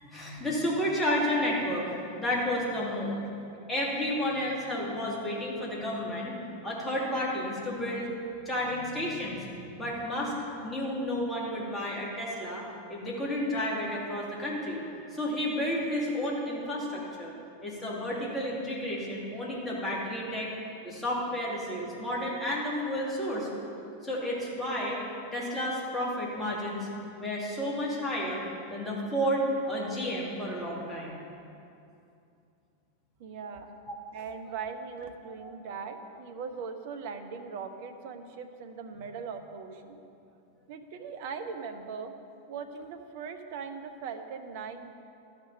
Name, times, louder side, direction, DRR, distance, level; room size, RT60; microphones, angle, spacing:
voice 1, 0.1-3.2 3.7-6.4 6.6-8.1 8.4-10.3 10.6-14.8 15.1-17.3 17.6-20.5 20.8-23.5 24.0-25.0 25.3-26.9 27.2-28.4 28.7-31.2 33.9-34.0 35.4-35.5, equal, 15° left, -4 dB, 2.7 m, -31 dB
voice 2, 33.2-33.7 34.1-40.0 40.7-42.1 42.5-44.9, right 5 dB, 50° right, 7 dB, 0.9 m, -40 dB
12.0 x 6.8 x 5.6 m, 2.6 s
figure-of-eight pair, 90°, 0 cm